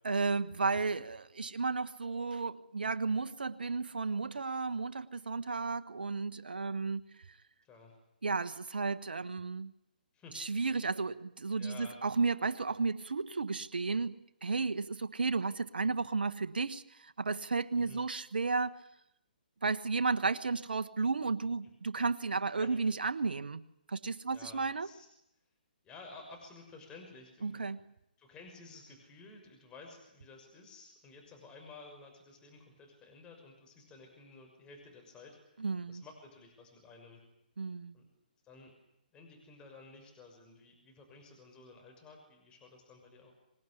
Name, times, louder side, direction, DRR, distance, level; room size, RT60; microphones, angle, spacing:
voice 1, 0.0-7.0 8.2-9.7 10.3-14.2 14.4-18.8 19.6-24.9 27.4-27.8 35.6-36.0 37.6-38.0, right 4 dB, 85° right, 9 dB, 1.3 m, -33 dB
voice 2, 7.6-8.0 10.1-10.4 11.6-12.0 17.8-18.0 22.6-22.7 24.3-25.1 25.8-27.9 28.2-37.2 37.9-38.1 38.4-38.7 39.1-43.3, left 3 dB, 15° left, 3 dB, 6.1 m, -53 dB
25.5 x 19.5 x 10.0 m, 0.83 s
hypercardioid pair, 145°, 5 cm